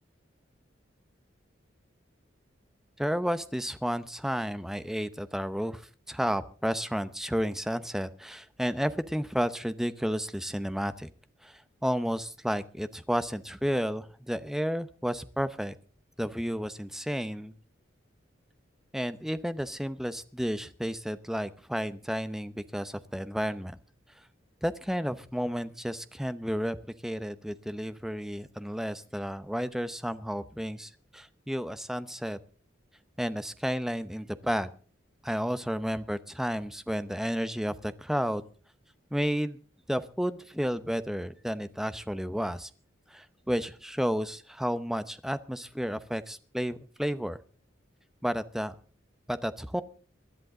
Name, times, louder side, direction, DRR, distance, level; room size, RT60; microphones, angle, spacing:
voice 1, 3.0-11.1 11.4-15.7 16.2-17.5 18.9-23.8 24.6-26.8 27.0-32.4 33.2-34.7 35.2-38.4 39.1-39.6 39.9-42.7 43.1-47.4 48.2-48.7 49.3-49.8, equal, ahead, 12 dB, 0.7 m, -32 dB
24.0 x 10.5 x 3.8 m, 0.41 s
head